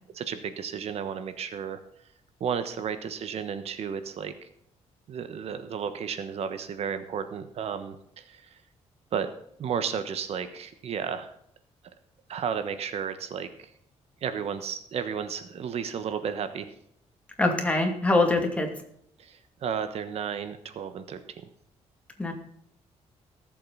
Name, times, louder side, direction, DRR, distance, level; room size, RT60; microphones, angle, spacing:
voice 1, 0.1-1.8 2.4-4.3 5.1-8.6 9.1-9.3 9.6-11.3 12.3-13.7 14.2-16.7 19.2-21.4, right 7 dB, 65° right, 10 dB, 1.2 m, -33 dB
voice 2, 17.4-18.7 22.2-22.3, left 2 dB, 10° left, 3 dB, 2.4 m, -23 dB
18.5 x 7.7 x 4.0 m, 0.70 s
cardioid pair, 140°, 12 cm